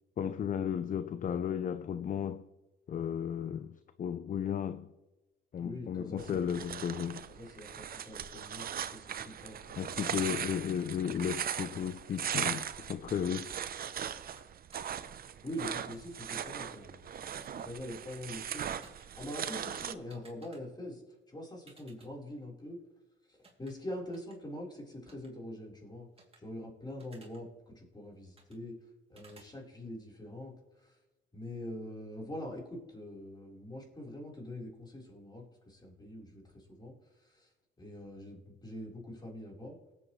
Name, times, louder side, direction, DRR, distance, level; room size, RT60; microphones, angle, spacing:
voice 1, 0.2-2.5 2.9-4.9 5.5-7.3 9.8-13.6, left 8 dB, 40° left, 0.5 m, -34 dB
voice 2, 5.6-6.5 7.3-10.4 12.0-12.1 15.4-17.0 17.5-18.7 19.1-21.0 21.3-22.8 23.3-26.1 26.4-28.8 29.1-31.0 31.3-37.5 37.8-39.8, left 1 dB, 20° left, 4.0 m, -44 dB
sound 1, 6.2-19.9, right 8 dB, 50° right, 0.6 m, -39 dB
sound 2, 14.2-14.4 14.7-14.9 17.4-17.7 18.1-18.4 18.8-19.1 20.1-20.6 21.7-22.1 23.4-23.7 24.1-24.4 25.1-25.3 26.2-26.4 27.0-27.4 28.4-28.6 29.2-29.5, right 3 dB, 30° right, 2.7 m, -58 dB
18.5 x 7.9 x 3.1 m
cardioid pair, 90°, 20 cm